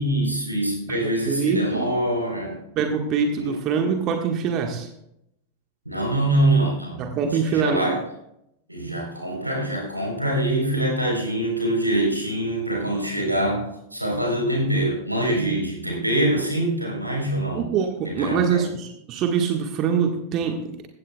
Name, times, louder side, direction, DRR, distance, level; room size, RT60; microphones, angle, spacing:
voice 1, 0.0-2.6 3.3-3.6 5.9-8.0 8.7-17.7 18.1-18.7, right 1 dB, 85° right, 0 dB, 4.0 m, -24 dB
voice 2, 0.9-1.9 2.7-4.9 7.0-7.9 13.2-13.3 15.3-15.6 17.5-20.8, right 6 dB, 35° right, 4 dB, 1.5 m, -24 dB
16.0 x 15.5 x 2.3 m, 0.79 s
figure-of-eight pair, 90°, 0 cm